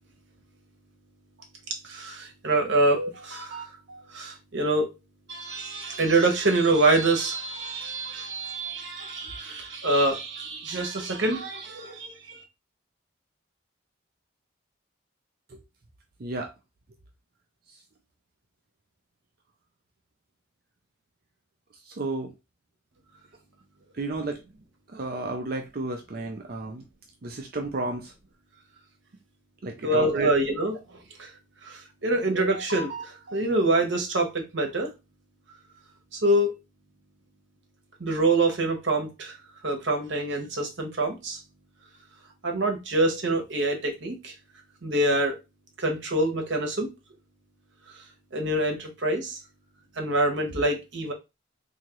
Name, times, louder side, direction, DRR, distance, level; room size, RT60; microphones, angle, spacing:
voice 1, 1.8-4.9 5.3-12.1 29.8-30.7 31.2-31.3 31.6-34.9 36.1-36.5 38.0-39.3 39.6-41.4 42.4-44.3 44.8-45.4 45.8-46.9 48.3-49.4 50.0-51.1, right 2 dB, 65° right, 1.0 m, -25 dB
voice 2, 16.2-16.5 21.9-22.3 24.0-24.4 24.9-26.8 27.2-28.1 29.6-30.3, right 2 dB, 45° right, 0.5 m, -32 dB
3.6 x 2.8 x 3.0 m
head